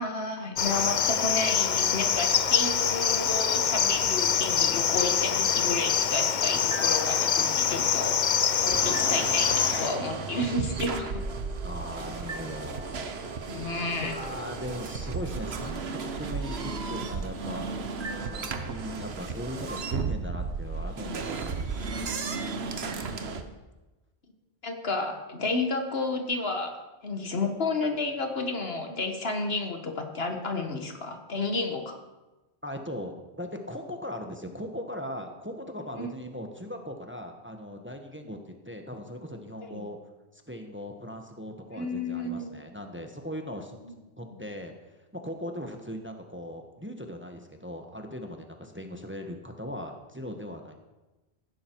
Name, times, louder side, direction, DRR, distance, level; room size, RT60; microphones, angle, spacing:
voice 1, 0.0-8.2 8.6-11.2 13.5-14.1 18.0-18.1 24.6-32.0 36.0-36.1 39.6-39.8 41.7-42.5, left 3 dB, 70° left, 5 dB, 1.8 m, -31 dB
Cricket, 0.6-10.0, left 7 dB, 50° left, 0.7 m, -25 dB
sound 1, 3.1-19.8, right 1 dB, 55° right, 2.0 m, -45 dB
sound 2, 8.7-23.4, right 4 dB, 75° right, 1.3 m, -34 dB
voice 2, 11.6-13.1 14.0-17.7 18.2-22.0 32.6-40.0 40.3-43.8 44.2-44.7 45.1-50.7, equal, 10° right, 4 dB, 1.2 m, -39 dB
15.5 x 11.5 x 4.6 m, 1.1 s
omnidirectional pair, 1.1 m